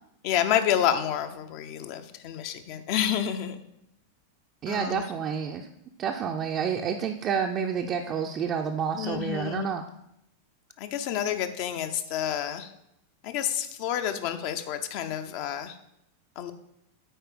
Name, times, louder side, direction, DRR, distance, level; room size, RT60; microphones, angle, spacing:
voice 1, 0.2-3.6 4.7-5.0 9.0-9.6 10.8-12.7 13.2-15.8 16.4-16.5, left 10 dB, 45° left, 8 dB, 0.7 m, -29 dB
voice 2, 4.6-5.7 6.0-9.8, right 7 dB, 30° right, 2 dB, 0.5 m, -29 dB
8.9 x 4.5 x 5.0 m, 0.81 s
figure-of-eight pair, 90°, 0 cm